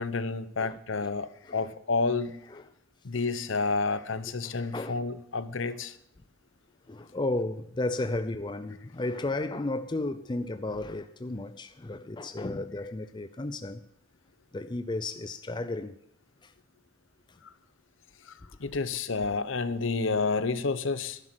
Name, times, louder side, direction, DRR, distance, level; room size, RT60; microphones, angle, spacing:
voice 1, 0.0-2.4 3.0-5.9 17.4-17.5 18.3-18.4 18.6-21.2, left 4 dB, 65° left, 0.8 m, -30 dB
voice 2, 4.4-5.0 6.9-13.8 14.5-16.0 16.4-16.5, left 2 dB, 20° left, 0.5 m, -33 dB
11.0 x 11.0 x 6.1 m
head